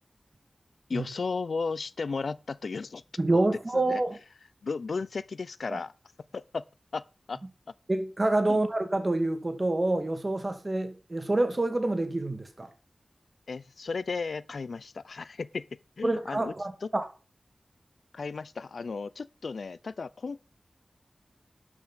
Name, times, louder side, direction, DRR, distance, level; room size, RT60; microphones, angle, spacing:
voice 1, 0.9-3.0 3.3-3.4 3.9-4.0 4.6-5.9 6.3-6.6 6.9-7.0 7.3-7.4 8.5-8.6 13.5-15.7 16.0-16.5 18.1-20.4, left 4 dB, 85° left, 0.5 m, -34 dB
voice 2, 3.2-4.2 5.7-5.8 7.9-12.7 16.0-17.1, right 2 dB, 35° right, 2.2 m, -27 dB
12.5 x 6.1 x 5.7 m
wide cardioid pair, 70°, 0 cm